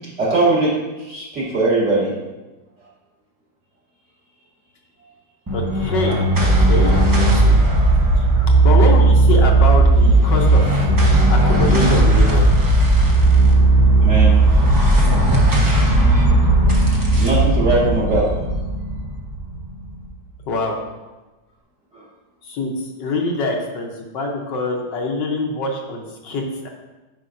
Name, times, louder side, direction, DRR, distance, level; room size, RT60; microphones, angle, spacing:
voice 1, 0.2-0.7 1.1-2.1 14.0-14.3 17.1-18.3, right 2 dB, 40° right, -7 dB, 2.2 m, -19 dB
voice 2, 5.5-7.6 8.2-10.9 11.3-12.5 20.5-20.8 22.4-26.7, left 2 dB, 75° left, 1 dB, 1.6 m, -24 dB
sound 1, 5.5-20.0, right 2 dB, 15° right, 0.6 m, -15 dB
9.7 x 5.2 x 2.6 m, 1.1 s
omnidirectional pair, 2.0 m